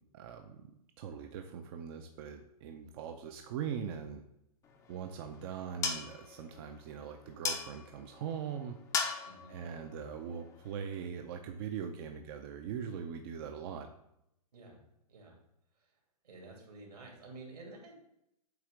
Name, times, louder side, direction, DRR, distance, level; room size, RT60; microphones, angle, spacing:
voice 1, 0.1-0.7 1.0-4.2 4.9-8.8 9.5-13.9, right 7 dB, 40° right, 5 dB, 0.5 m, -41 dB
sound 1, 4.6-11.1, left 5 dB, 15° left, 0.6 m, -40 dB
voice 2, 9.2-9.7 14.5-14.8 15.1-15.4 15.8-15.9 16.2-17.9, right 2 dB, 80° right, 0 dB, 2.5 m, -51 dB
8.0 x 2.8 x 4.9 m, 0.79 s
hypercardioid pair, 135°, 20 cm